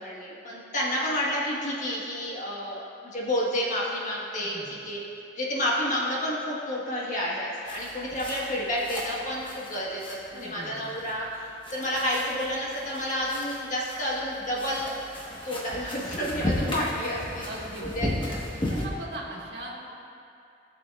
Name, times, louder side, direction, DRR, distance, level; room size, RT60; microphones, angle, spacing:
voice 1, 0.0-4.6 4.8-5.0 5.3-14.9 15.4-17.5 17.8-18.4, equal, 45° left, -5 dB, 1.5 m, -30 dB
voice 2, 4.4-4.9 10.3-11.2 16.2-16.8 17.4-18.2 18.5-19.7, right 1 dB, 70° right, -4 dB, 1.6 m, -41 dB
sound 1, 7.7-18.9, left 1 dB, 30° left, 1.3 m, -36 dB
16.0 x 6.9 x 2.4 m, 2.6 s
head